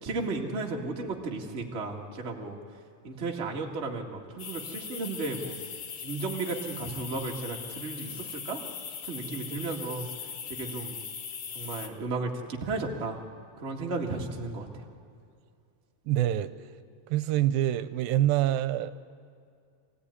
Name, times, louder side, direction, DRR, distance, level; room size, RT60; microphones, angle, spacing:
voice 1, 0.0-2.6 3.0-5.6 6.0-8.6 9.0-10.1 10.5-11.0 11.5-13.2 13.6-14.8, right 3 dB, 25° right, 0 dB, 1.5 m, -34 dB
sound 1, 4.4-11.9, left 7 dB, 60° left, 2.1 m, -40 dB
voice 2, 16.1-16.5 17.1-18.9, right 13 dB, 80° right, 13 dB, 2.4 m, -25 dB
24.0 x 16.0 x 9.8 m, 2.4 s
omnidirectional pair, 4.1 m